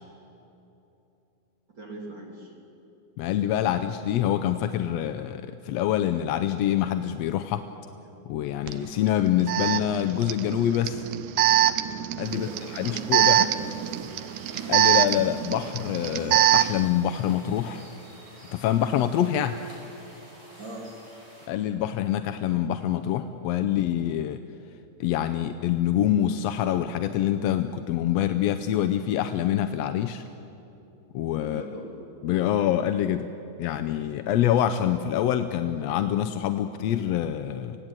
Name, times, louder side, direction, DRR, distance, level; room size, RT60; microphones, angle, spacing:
voice 1, 1.8-2.5 12.3-14.2 20.6-20.9 31.4-32.0, right 1 dB, 40° right, -1 dB, 3.7 m, -41 dB
voice 2, 3.2-7.7 8.3-11.0 12.2-13.5 14.7-17.9 18.5-19.6 21.5-24.4 25.0-30.2 31.1-31.6 32.2-33.3 33.6-37.8, left 11 dB, 75° left, 8 dB, 1.7 m, -26 dB
Alarm, 8.7-8.8 9.5-16.9, right 12 dB, 80° right, 2.1 m, -23 dB
sound 1, 12.2-21.5, equal, 20° right, 5.4 m, -49 dB
26.0 x 17.0 x 9.0 m, 3.0 s
omnidirectional pair, 3.3 m